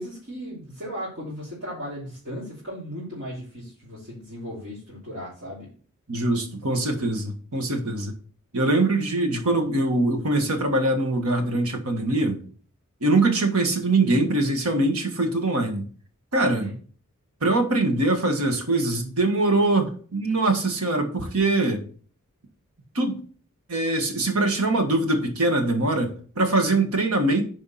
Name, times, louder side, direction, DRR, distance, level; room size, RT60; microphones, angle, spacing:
voice 1, 0.0-5.7 16.4-16.7, equal, 55° right, -9 dB, 3.3 m, -36 dB
voice 2, 6.1-8.1 8.5-12.4 13.0-15.9 16.3-16.7 17.4-21.8 22.9-23.2 23.7-27.4, right 2 dB, 80° right, 5 dB, 1.7 m, -23 dB
9.2 x 4.9 x 4.2 m, 0.43 s
head